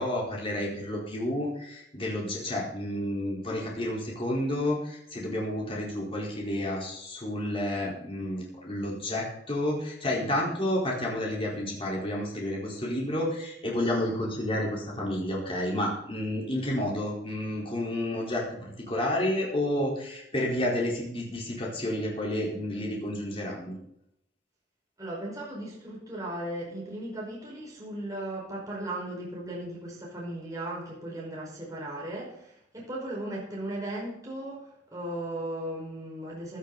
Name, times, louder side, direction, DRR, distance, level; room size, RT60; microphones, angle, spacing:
voice 1, 0.0-23.8, left 1 dB, 30° left, -3 dB, 4.4 m, -30 dB
voice 2, 25.0-36.6, right 1 dB, 20° right, -4 dB, 5.4 m, -37 dB
15.0 x 12.5 x 4.2 m, 0.74 s
head